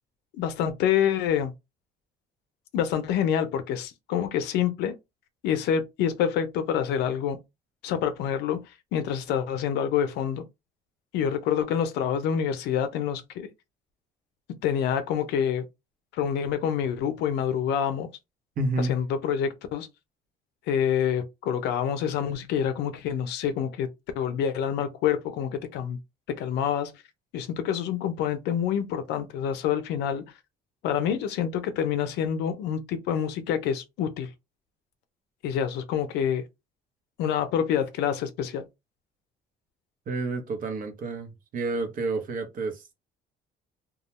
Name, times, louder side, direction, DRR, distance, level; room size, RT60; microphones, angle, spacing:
voice 1, 0.4-1.5 2.7-4.9 5.4-7.4 7.8-8.6 8.9-10.4 11.1-13.5 14.6-15.7 16.1-18.1 18.8-19.9 20.7-23.9 24.2-26.0 26.3-26.9 27.3-30.2 30.8-34.3 35.4-36.4 37.2-38.6, left 8 dB, 85° left, 0.5 m, -27 dB
voice 2, 18.6-19.0 40.1-42.9, right 3 dB, 55° right, 0.8 m, -30 dB
2.3 x 2.1 x 3.0 m
cardioid pair, 110°, 17 cm